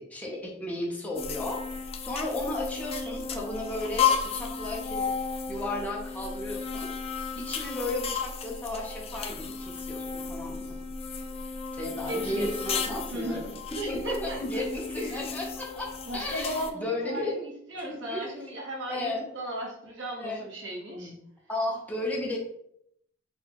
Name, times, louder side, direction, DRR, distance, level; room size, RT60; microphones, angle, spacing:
voice 1, 0.0-1.6 2.0-5.1 5.5-6.9 7.4-10.8 11.8-17.3 17.9-18.3 18.9-19.3 20.2-20.5 21.0-21.2 21.5-22.4, left 1 dB, 10° left, -3 dB, 0.7 m, -34 dB
sound 1, 1.1-16.7, left 6 dB, 30° left, 0.3 m, -34 dB
voice 2, 12.1-12.6 13.1-13.4 13.7-14.6 15.0-15.2 16.1-21.1, right 1 dB, 80° right, -3 dB, 1.2 m, -36 dB
4.1 x 2.3 x 2.9 m, 0.73 s
head